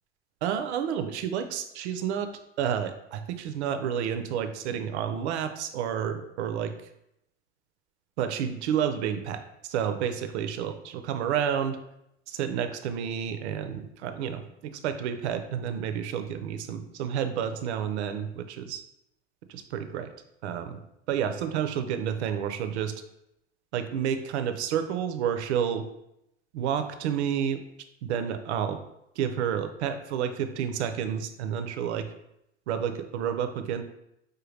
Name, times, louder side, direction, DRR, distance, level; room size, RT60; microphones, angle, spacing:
voice 1, 0.4-2.3 2.6-6.7 8.2-11.8 12.3-18.8 19.5-20.1 20.4-20.8 21.1-23.0 23.7-25.9 26.5-27.6 28.0-28.8 29.2-32.1 32.7-33.8, right 8 dB, 75° right, 8 dB, 0.5 m, -30 dB
5.0 x 2.2 x 3.1 m, 0.81 s
hypercardioid pair, 70°, 34 cm